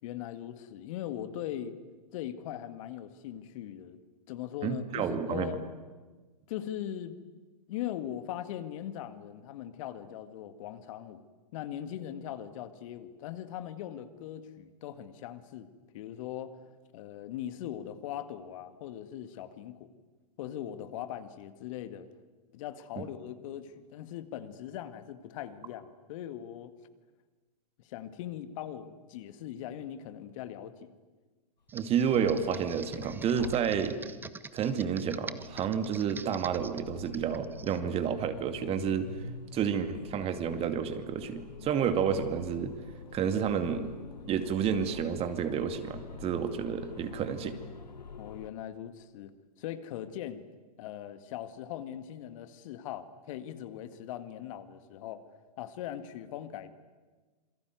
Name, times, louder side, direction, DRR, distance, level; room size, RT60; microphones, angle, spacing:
voice 1, 0.0-1.8 2.1-4.0 4.3-5.7 6.5-7.2 7.7-11.2 11.5-15.7 15.9-16.6 16.9-19.9 20.4-22.1 22.5-26.7 27.8-30.9 48.2-49.3 49.6-50.4 50.8-55.2 55.6-56.7, left 11 dB, 50° left, 11 dB, 1.9 m, -40 dB
voice 2, 4.6-5.6 31.7-34.0 34.5-39.1 39.5-42.7 43.1-44.0 44.3-47.6, right 7 dB, 30° right, 9 dB, 2.3 m, -30 dB
Computer keyboard, 31.7-37.8, right 4 dB, 10° right, 0.8 m, -45 dB
sound 1, 31.8-34.4 35.1-48.5, left 5 dB, 90° left, 1.4 m, -47 dB
27.5 x 22.0 x 9.4 m, 1.3 s
hypercardioid pair, 115°, 21 cm